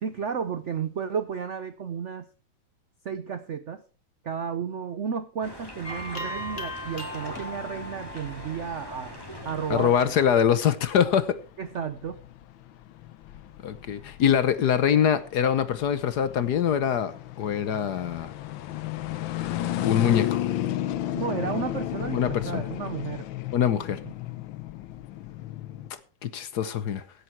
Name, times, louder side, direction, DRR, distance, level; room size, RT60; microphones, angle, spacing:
voice 1, 0.0-2.3 3.0-3.8 4.2-9.2 9.4-10.0 11.6-12.2 21.2-23.3 24.0-24.1, right 7 dB, 65° right, 0.7 m, -32 dB
sound 1, 5.4-10.2, equal, 10° left, 2.9 m, -42 dB
sound 2, 5.8-9.4, left 1 dB, 35° left, 2.7 m, -38 dB
sound 3, 7.0-25.9, left 13 dB, 75° left, 1.5 m, -34 dB
voice 2, 9.7-11.4 13.6-18.3 19.8-20.4 22.1-22.6 23.5-24.0 26.2-27.0, left 8 dB, 60° left, 1.3 m, -24 dB
16.5 x 8.3 x 4.5 m
omnidirectional pair, 2.2 m